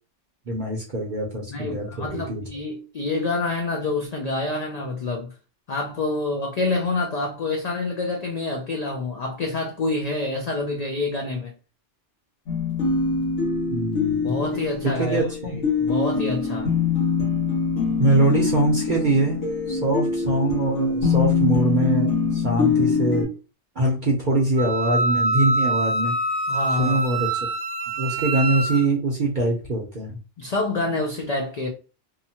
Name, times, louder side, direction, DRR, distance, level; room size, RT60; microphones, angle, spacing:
voice 1, 0.5-2.4 13.7-14.4 14.8-15.6 18.0-23.3 23.8-26.1 26.8-27.3 28.0-30.2, right 2 dB, 50° right, 0.7 m, -23 dB
voice 2, 1.5-5.3 5.7-11.5 14.2-15.2 15.5-16.7 26.5-27.0 30.4-31.7, left 3 dB, 60° left, 0.4 m, -27 dB
sound 1, 12.5-23.2, left 5 dB, 80° left, 1.4 m, -24 dB
Wind instrument woodwind instrument, 24.6-28.8, right 2 dB, 80° right, 0.9 m, -25 dB
2.8 x 2.1 x 2.7 m
omnidirectional pair, 1.2 m